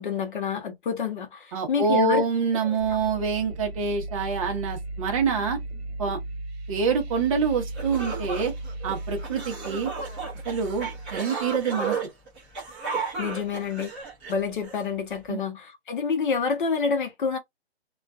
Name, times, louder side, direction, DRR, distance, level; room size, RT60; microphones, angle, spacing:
voice 1, 0.0-2.2 13.2-13.9 14.3-17.4, left 5 dB, 50° left, 0.7 m, -28 dB
voice 2, 1.5-5.6 6.0-6.2 6.7-8.5 8.8-9.9 10.4-12.0 15.3-15.4, right 5 dB, 30° right, 0.8 m, -26 dB
sound 1, 2.8-11.2, right 2 dB, 70° right, 0.9 m, -36 dB
sound 2, 7.4-7.5 7.7-14.8, right 4 dB, 10° right, 0.4 m, -34 dB
2.4 x 2.3 x 2.3 m
hypercardioid pair, 155°, 33 cm